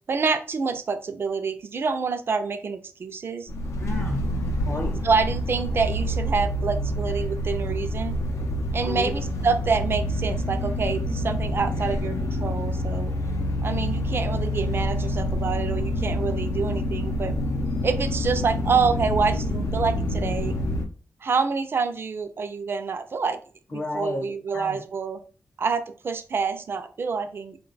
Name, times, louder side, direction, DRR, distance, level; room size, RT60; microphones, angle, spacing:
voice 1, 0.1-3.5 5.0-8.2 8.7-13.1 13.6-17.3 17.8-20.6 21.2-23.4 23.7-25.2 25.6-27.6, right 5 dB, 45° right, 9 dB, 0.4 m, -27 dB
sound 1, 3.5-20.9, equal, 75° left, 0.6 m, -27 dB
voice 2, 3.8-5.0 8.8-9.1 23.7-24.8, left 2 dB, 30° left, -2 dB, 0.6 m, -32 dB
3.9 x 2.2 x 3.9 m, 0.39 s
wide cardioid pair, 155°, 5 cm